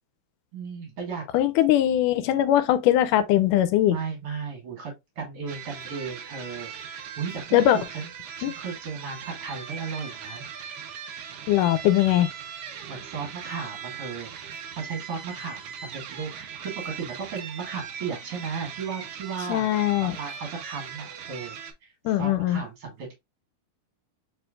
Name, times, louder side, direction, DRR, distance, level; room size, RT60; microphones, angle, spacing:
voice 1, 0.5-1.2 3.9-8.1 8.4-10.4 12.9-19.7 20.0-21.6 21.8-21.9 22.2-23.1, right 5 dB, 50° right, 2.3 m, -35 dB
voice 2, 1.3-4.0 7.5-7.8 8.4-8.5 11.5-12.3 19.5-20.1 22.1-22.6, left 12 dB, 85° left, 2.2 m, -21 dB
sound 1, 5.5-21.7, right 7 dB, 85° right, 1.2 m, -40 dB
4.9 x 4.4 x 2.4 m
omnidirectional pair, 3.7 m